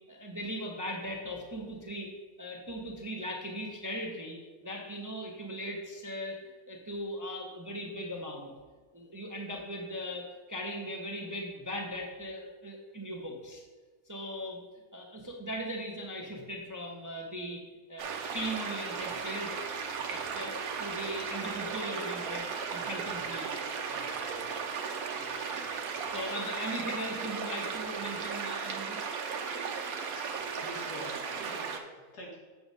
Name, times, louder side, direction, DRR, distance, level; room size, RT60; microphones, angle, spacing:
voice 1, 0.1-2.1 2.4-6.4 6.7-8.5 8.9-13.6 14.1-14.6 14.9-17.6 17.9-22.5 22.7-23.6 23.9-24.5 25.1-25.7 26.1-29.0, equal, 15° right, 0 dB, 0.6 m, -39 dB
sound 1, 18.0-31.8, right 5 dB, 70° right, 1.2 m, -36 dB
voice 2, 30.0-32.4, equal, 85° left, -4 dB, 2.6 m, -47 dB
7.6 x 4.0 x 6.2 m, 1.4 s
omnidirectional pair, 1.6 m